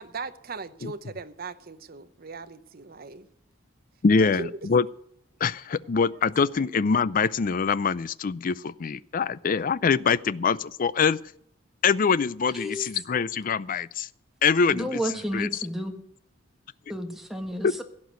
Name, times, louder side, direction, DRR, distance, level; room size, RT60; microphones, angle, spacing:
voice 1, 0.0-3.3 4.2-4.6 6.1-6.2 6.5-6.7, right 4 dB, 50° right, 0.8 m, -39 dB
voice 2, 4.0-4.9 5.4-11.2 11.8-14.1 14.4-15.0 15.3-15.5 17.6-17.7, left 5 dB, 45° left, 0.4 m, -24 dB
voice 3, 12.5-12.9 14.7-16.0 16.9-17.8, equal, ahead, 1.6 m, -31 dB
16.5 x 6.1 x 9.5 m
head